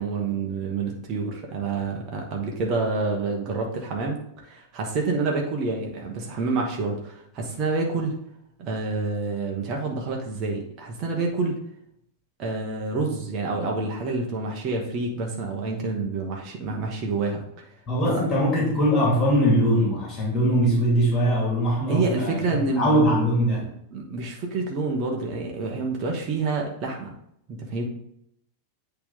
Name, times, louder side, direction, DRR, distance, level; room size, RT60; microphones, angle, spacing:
voice 1, 0.0-8.2 8.6-11.6 12.4-17.7 18.1-18.2 21.9-22.9 23.9-27.1 27.5-27.9, right 3 dB, 35° right, 0 dB, 1.2 m, -28 dB
voice 2, 17.9-22.4 22.8-23.7, equal, 25° left, -4 dB, 2.4 m, -21 dB
8.5 x 3.4 x 3.8 m, 0.74 s
figure-of-eight pair, 90°, 0 cm